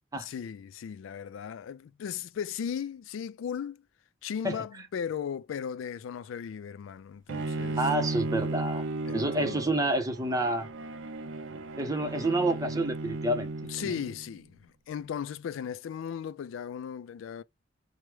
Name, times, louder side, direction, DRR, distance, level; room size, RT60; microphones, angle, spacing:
voice 1, 0.1-3.8 4.2-7.8 9.1-9.6 13.7-17.4, left 7 dB, 85° left, 0.3 m, -37 dB
Bowed string instrument, 7.3-14.3, right 2 dB, 80° right, 0.5 m, -35 dB
voice 2, 7.8-8.9 9.1-10.7 11.8-13.5 13.8-13.9, right 1 dB, 20° right, 0.6 m, -28 dB
4.7 x 2.0 x 3.1 m
head